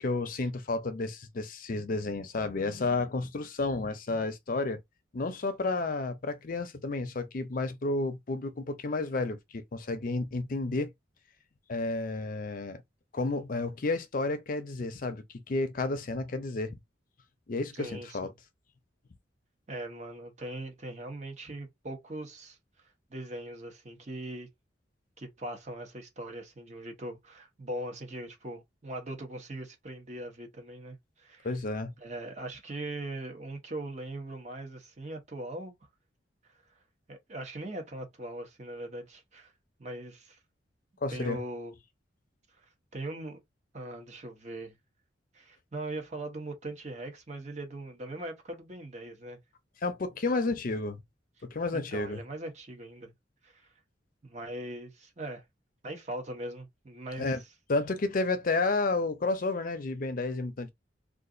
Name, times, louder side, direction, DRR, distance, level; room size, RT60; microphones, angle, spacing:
voice 1, 0.0-4.8 5.1-10.9 11.7-12.8 13.1-16.7 17.5-18.3 31.4-31.9 41.0-41.4 49.8-51.0 51.4-52.2 57.2-57.4 57.7-60.7, left 3 dB, 50° left, 0.5 m, -31 dB
voice 2, 17.8-18.3 19.7-22.6 23.1-24.5 25.2-31.5 32.0-35.7 37.1-39.5 39.8-40.4 41.1-41.7 42.6-43.4 43.7-44.8 45.3-49.4 51.7-53.1 53.4-53.7 54.2-55.4 55.8-57.3, right 1 dB, 40° right, 0.9 m, -40 dB
2.4 x 2.4 x 3.7 m
head